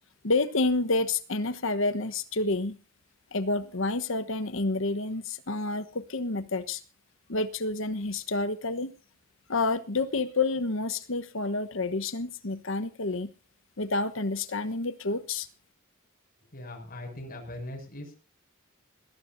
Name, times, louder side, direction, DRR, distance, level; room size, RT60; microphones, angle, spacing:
voice 1, 0.2-2.7 3.3-6.8 7.3-8.9 9.5-13.3 13.8-15.5, left 3 dB, 65° left, 12 dB, 1.2 m, -29 dB
voice 2, 16.5-18.1, left 1 dB, 45° left, 2 dB, 6.8 m, -40 dB
20.0 x 18.5 x 2.7 m, 0.34 s
head